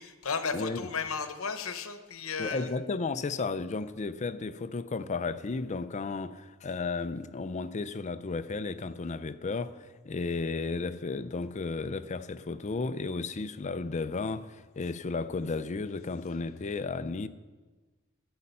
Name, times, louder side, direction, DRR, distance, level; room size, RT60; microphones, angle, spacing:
voice 1, 0.0-2.7, left 5 dB, 75° left, 1.0 m, -34 dB
voice 2, 0.5-0.9 2.4-17.3, left 3 dB, 35° left, 0.5 m, -33 dB
12.5 x 8.7 x 5.5 m
head